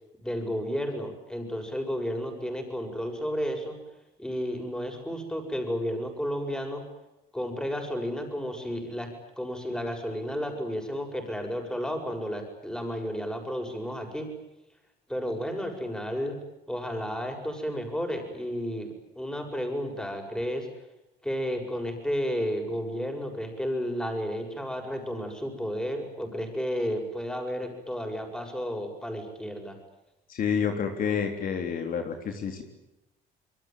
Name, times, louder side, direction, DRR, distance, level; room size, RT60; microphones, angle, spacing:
voice 1, 0.2-3.8 4.2-6.8 7.3-9.1 9.4-14.3 15.1-16.4 16.7-20.7 21.2-29.8, equal, 5° left, 4 dB, 7.5 m, -32 dB
voice 2, 30.3-32.6, left 7 dB, 55° left, 5 dB, 3.7 m, -29 dB
26.5 x 23.0 x 9.3 m, 0.92 s
cardioid pair, 110°, 17 cm